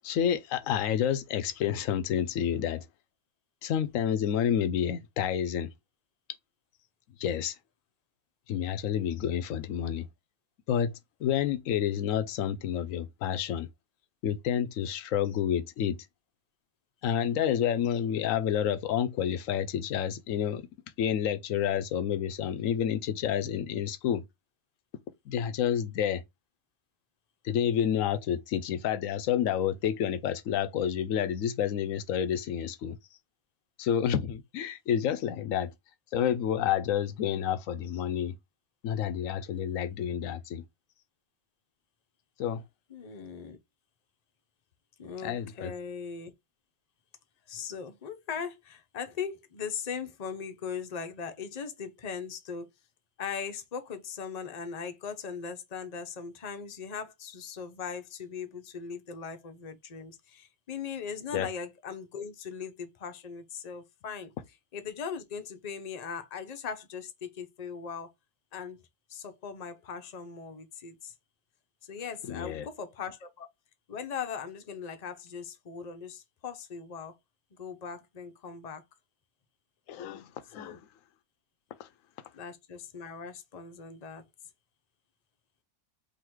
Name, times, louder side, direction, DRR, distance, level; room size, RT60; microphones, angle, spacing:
voice 1, 0.0-2.9 3.6-5.7 7.2-7.6 8.5-10.1 10.7-10.9 11.2-13.7 14.2-16.0 17.0-20.7 21.0-24.2 25.3-26.2 27.4-33.0 33.8-35.7 36.1-38.3 38.8-40.6 42.4-42.6 45.2-45.7 61.3-61.5 72.3-72.7 79.9-80.8 81.8-81.9, left 9 dB, 65° left, 0.9 m, -29 dB
voice 2, 42.9-43.6 45.0-46.3 47.5-52.7 53.2-64.3 64.7-68.1 68.5-68.8 69.1-71.1 71.9-73.5 73.9-77.1 77.5-78.8 80.6-80.8 82.3-84.2, left 6 dB, 40° left, 0.6 m, -39 dB
3.9 x 2.8 x 4.5 m
omnidirectional pair, 1.7 m